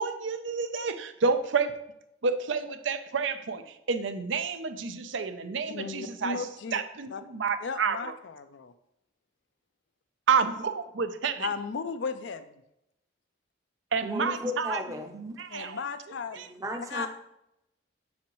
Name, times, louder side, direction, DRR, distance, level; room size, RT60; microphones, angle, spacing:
voice 1, 0.0-1.8 2.2-6.5 6.7-8.1 10.3-11.5 13.9-14.8 15.1-15.8 16.3-16.5, right 5 dB, 80° right, 10 dB, 0.6 m, -29 dB
voice 2, 5.7-6.8 7.1-7.2 7.6-8.7 11.4-12.5 15.5-16.4 16.9-17.1, left 5 dB, 70° left, 10 dB, 0.4 m, -35 dB
voice 3, 14.0-15.2 15.6-15.8 16.3-17.1, left 1 dB, 15° right, 4 dB, 0.6 m, -35 dB
7.2 x 6.0 x 3.1 m, 0.82 s
head